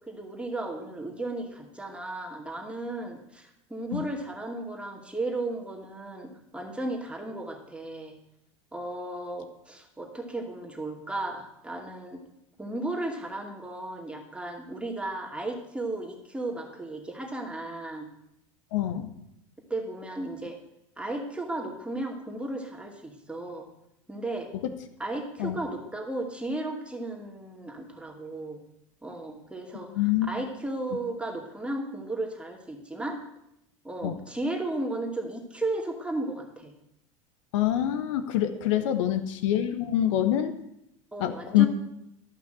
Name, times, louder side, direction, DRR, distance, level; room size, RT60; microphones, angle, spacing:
voice 1, 0.1-8.1 8.7-12.2 12.6-18.1 19.7-20.6 21.0-23.7 24.1-24.5 25.0-28.6 29.0-33.2 33.8-36.7 38.6-38.8 41.1-41.7, right 2 dB, 5° right, 1 dB, 2.3 m, -35 dB
voice 2, 18.7-19.1 25.4-25.6 29.9-30.3 34.0-34.2 37.5-40.5 41.2-41.7, left 12 dB, 65° left, 9 dB, 1.0 m, -25 dB
12.0 x 5.9 x 7.7 m, 0.81 s
hypercardioid pair, 80°, 17 cm